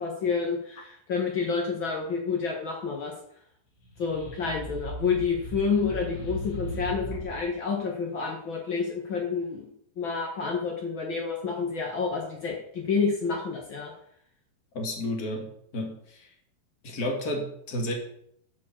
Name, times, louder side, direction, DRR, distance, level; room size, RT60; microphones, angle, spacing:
voice 1, 0.0-3.1 4.0-9.7 10.0-13.9, left 5 dB, 75° left, -1 dB, 1.1 m, -29 dB
sound 1, 3.8-7.5, right 1 dB, 90° left, 5.0 m, -37 dB
voice 2, 14.7-16.3 16.8-17.9, left 1 dB, 35° left, 2 dB, 1.4 m, -32 dB
11.5 x 5.0 x 7.5 m, 0.71 s
omnidirectional pair, 4.7 m